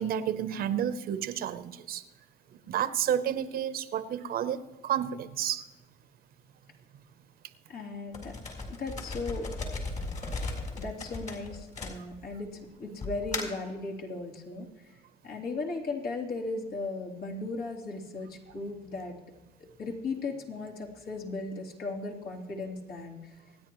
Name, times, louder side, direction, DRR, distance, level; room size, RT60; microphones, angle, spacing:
voice 1, 0.0-2.1 2.7-5.7 10.2-10.4, right 9 dB, 60° right, 13 dB, 0.8 m, -31 dB
voice 2, 7.7-8.3 8.7-9.5 10.4-15.0 15.2-23.3, left 3 dB, 70° left, -2 dB, 3.2 m, -37 dB
sound 1, 8.1-12.4 13.0-13.7, left 3 dB, 45° left, 3.9 m, -36 dB
25.5 x 9.9 x 3.1 m, 1.1 s
cardioid pair, 110°, 17 cm